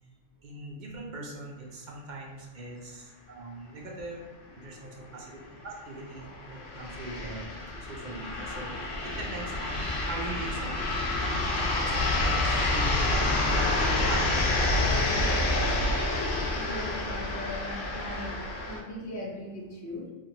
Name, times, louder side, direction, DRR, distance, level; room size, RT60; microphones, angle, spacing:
voice 1, 0.4-4.2 4.6-14.5, right 2 dB, 55° right, -1 dB, 0.6 m, -41 dB
sound 1, 4.7-4.8 5.1-5.2 6.0-18.8, left 2 dB, 75° left, 0.8 m, -28 dB
voice 2, 16.5-18.4 18.7-20.1, left 1 dB, 20° left, -4 dB, 0.5 m, -39 dB
2.9 x 2.4 x 2.8 m, 1.3 s
omnidirectional pair, 1.1 m